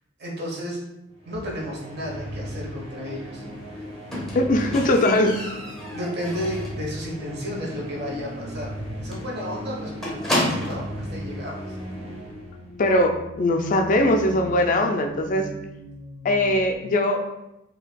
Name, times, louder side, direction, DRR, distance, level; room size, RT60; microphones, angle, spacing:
voice 1, 0.2-0.8 1.2-3.4 3.7-3.9 4.6-5.0 5.9-8.7 9.0-10.2 10.5-11.8, equal, 60° right, -2 dB, 1.0 m, -33 dB
sound 1, 1.2-13.0, equal, 30° right, 0.9 m, -37 dB
Squeak, 4.1-6.9 7.2-7.6 7.9-8.0 8.4-8.5 8.7-8.9 9.1-11.0 11.8-11.9, left 1 dB, 5° left, 0.7 m, -30 dB
voice 2, 4.3-5.4 12.8-15.5 16.2-17.2, left 1 dB, 45° left, 5 dB, 0.3 m, -21 dB
sound 2, 7.2-16.8, right 1 dB, 85° right, 1.4 m, -40 dB
5.0 x 2.7 x 2.2 m, 0.92 s
head